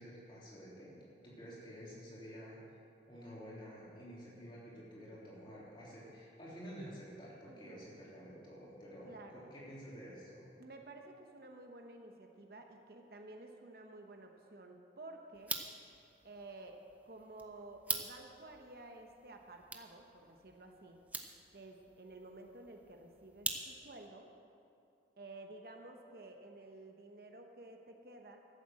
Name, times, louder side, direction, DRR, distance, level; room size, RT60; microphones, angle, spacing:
voice 1, 0.0-2.6 3.0-10.5, equal, 25° left, -6 dB, 3.3 m, -50 dB
voice 2, 7.5-7.9 9.0-9.5 10.6-15.6 16.2-16.8 17.0-21.0 21.5-24.3 25.2-28.4, right 2 dB, 55° right, 3 dB, 1.0 m, -52 dB
sound 1, 15.3-24.1, right 3 dB, 10° right, 0.6 m, -45 dB
13.0 x 7.7 x 7.6 m, 2.5 s
head